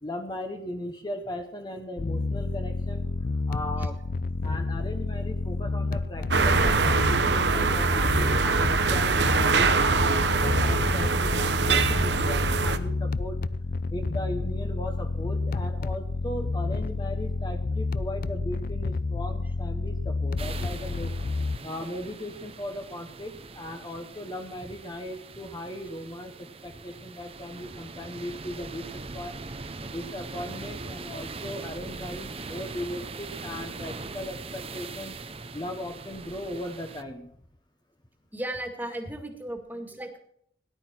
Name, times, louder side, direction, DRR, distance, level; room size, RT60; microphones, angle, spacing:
voice 1, 0.0-3.1 3.5-4.0 4.4-13.4 13.9-21.1 21.6-35.2 35.5-37.3, left 1 dB, 25° left, 5 dB, 1.1 m, -38 dB
sound 1, 2.0-21.6, left 3 dB, 55° left, 0.5 m, -30 dB
sound 2, 6.3-12.8, right 4 dB, 80° right, 1.0 m, -23 dB
Cape Spartel-seashore, 20.4-37.0, right 3 dB, 35° right, 0.8 m, -41 dB
voice 2, 38.3-40.2, right 1 dB, 10° right, 4 dB, 2.0 m, -36 dB
17.5 x 11.5 x 4.5 m, 0.68 s
head